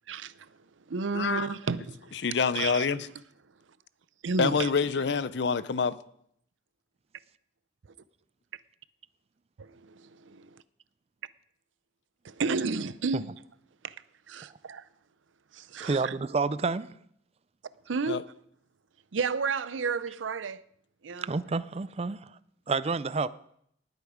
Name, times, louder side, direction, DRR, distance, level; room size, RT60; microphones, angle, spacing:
voice 1, 0.1-0.5 0.9-2.2 2.5-2.9 4.2-4.7 9.6-10.6 12.2-13.3 13.8-14.0 14.3-14.8 15.5-16.2 17.9-18.3 19.1-20.6 21.0-21.3, right 4 dB, 90° right, 0.6 m, -32 dB
voice 2, 1.1-1.5 2.2-3.1 4.4-6.0 18.1-18.2, left 5 dB, 65° left, 0.5 m, -26 dB
voice 3, 15.8-16.9 21.2-22.3 22.7-23.3, right 4 dB, 35° right, 0.4 m, -29 dB
19.0 x 8.2 x 5.0 m
head